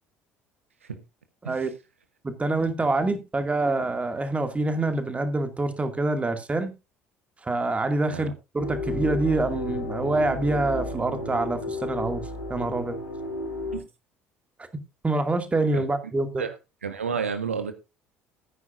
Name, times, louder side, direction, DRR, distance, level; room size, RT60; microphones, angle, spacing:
voice 1, 2.2-6.7 7.4-13.0 15.0-16.4, right 2 dB, 20° right, 7 dB, 2.3 m, -26 dB
sound 1, 8.6-13.8, left 2 dB, 85° left, 3.2 m, -33 dB
voice 2, 16.8-17.7, right 6 dB, 80° right, 9 dB, 1.1 m, -31 dB
15.0 x 9.6 x 2.6 m, 0.26 s
figure-of-eight pair, 60°, 7 cm